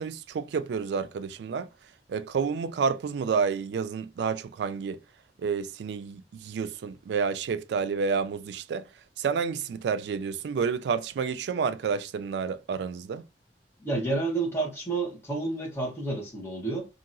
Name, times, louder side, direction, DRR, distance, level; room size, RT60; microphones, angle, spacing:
voice 1, 0.0-1.7 2.1-5.0 5.4-8.8 9.2-13.3, right 5 dB, 70° right, 0.3 m, -29 dB
voice 2, 13.8-16.9, right 3 dB, 15° left, 1.0 m, -30 dB
2.8 x 2.6 x 2.5 m
head